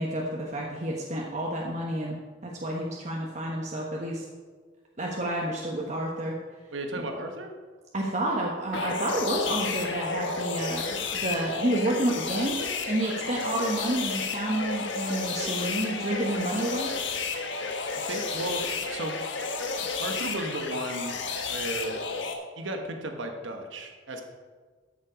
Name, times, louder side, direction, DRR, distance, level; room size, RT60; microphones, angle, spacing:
voice 1, 0.0-4.2 5.0-6.4 7.9-16.9, right 1 dB, 40° right, -2 dB, 1.2 m, -30 dB
voice 2, 6.7-7.5 18.0-19.2 20.0-21.1 21.5-22.0 22.6-24.2, right 1 dB, 85° right, 4 dB, 1.2 m, -34 dB
sound 1, 8.7-22.3, left 4 dB, 75° left, 1.3 m, -32 dB
13.0 x 7.5 x 5.1 m, 1.5 s
head